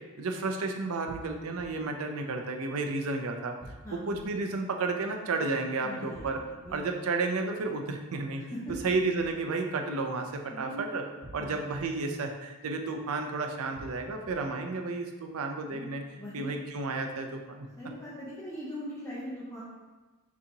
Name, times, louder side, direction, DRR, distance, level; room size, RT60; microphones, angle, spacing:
voice 1, 0.2-3.5 3.9-6.4 6.7-8.4 8.7-11.0 11.3-16.0 16.3-17.7, right 3 dB, 80° right, 4 dB, 0.5 m, -32 dB
sound 1, 1.1-1.6 3.6-4.2 6.1-6.7 8.7-9.3 11.2-11.8 13.7-14.3, right 1 dB, 25° right, 0.3 m, -47 dB
voice 2, 5.8-6.8 8.3-8.8 10.5-11.0 11.4-11.5 15.7-15.9 16.2-16.5 17.8-19.6, equal, 15° left, -10 dB, 0.8 m, -40 dB
6.2 x 2.8 x 2.7 m, 1.2 s
head